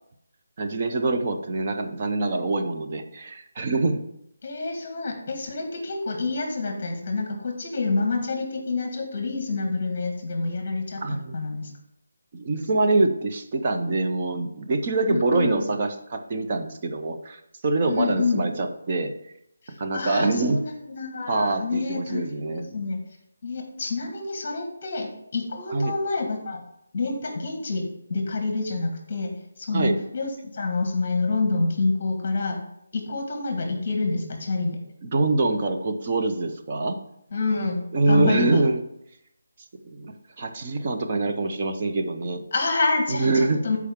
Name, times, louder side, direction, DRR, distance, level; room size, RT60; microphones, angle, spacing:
voice 1, 0.6-4.0 11.0-11.4 12.3-19.1 19.8-20.6 21.3-22.8 25.7-25.9 29.7-30.0 35.0-37.0 37.9-38.8 39.8-42.4 43.1-43.6, right 2 dB, 25° right, 5 dB, 0.6 m, -25 dB
voice 2, 4.4-11.7 15.1-15.6 17.8-18.4 19.6-23.0 23.4-26.6 26.9-32.6 32.9-34.8 37.3-38.6 42.5-43.8, left 3 dB, 25° left, 3 dB, 1.5 m, -28 dB
12.5 x 4.7 x 3.6 m, 0.78 s
hypercardioid pair, 180°, 0 cm